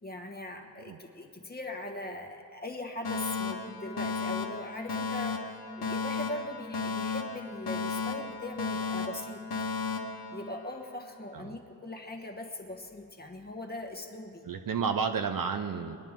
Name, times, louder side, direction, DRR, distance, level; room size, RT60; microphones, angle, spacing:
voice 1, 0.0-9.4 10.3-14.5, left 1 dB, 20° left, 3 dB, 1.3 m, -40 dB
Alarm, 3.0-11.1, left 4 dB, 60° left, 1.3 m, -34 dB
voice 2, 14.5-16.0, right 6 dB, 50° right, 7 dB, 0.7 m, -31 dB
23.0 x 10.0 x 3.7 m, 2.7 s
wide cardioid pair, 140°, 42 cm